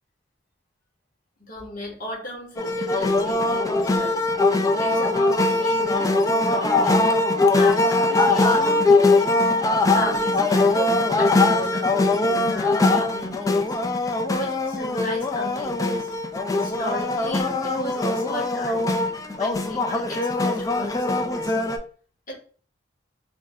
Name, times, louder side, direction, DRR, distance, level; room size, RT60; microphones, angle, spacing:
voice 1, 1.4-4.2 4.5-7.1 7.5-9.3 9.9-13.8 14.0-16.1 16.5-19.0 19.4-21.6 22.3-22.4, equal, 50° left, -5 dB, 1.4 m, -35 dB
sound 1, 2.6-21.8, left 2 dB, 20° left, 0.3 m, -21 dB
3.6 x 2.1 x 3.5 m, 0.43 s
head